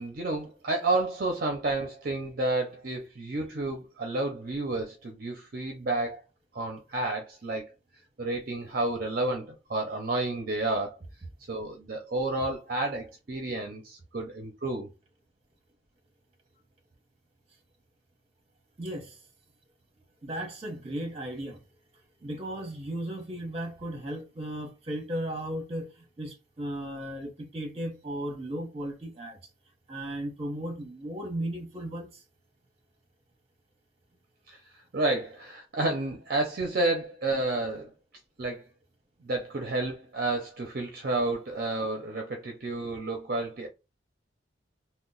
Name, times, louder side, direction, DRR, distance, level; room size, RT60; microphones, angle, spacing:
voice 1, 0.0-6.2 6.5-7.7 8.2-11.0 11.5-14.9 34.5-34.6 34.9-37.9 38.4-38.6 39.2-43.7, right 2 dB, 50° right, 0.5 m, -30 dB
voice 2, 18.8-19.2 20.2-21.6 22.2-29.4 29.9-32.2, right 1 dB, 30° right, 0.9 m, -36 dB
2.8 x 2.1 x 3.9 m
head